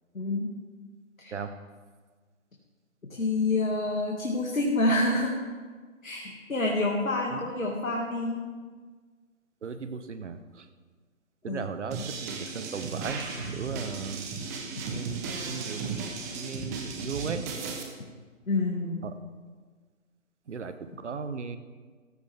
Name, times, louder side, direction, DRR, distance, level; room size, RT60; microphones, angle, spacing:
voice 1, 0.1-0.5 1.2-1.3 3.1-5.4 6.0-8.4 11.5-11.7 18.5-19.0, left 2 dB, 85° left, -1 dB, 2.4 m, -27 dB
voice 2, 9.6-10.6 11.4-13.2 13.5-14.3 14.9-17.4 19.0-19.1 20.5-21.6, right 5 dB, 60° right, 10 dB, 1.2 m, -37 dB
sound 1, 11.9-17.8, right 4 dB, 15° right, 1.0 m, -35 dB
15.5 x 14.5 x 3.6 m, 1.5 s
figure-of-eight pair, 150°, 40 cm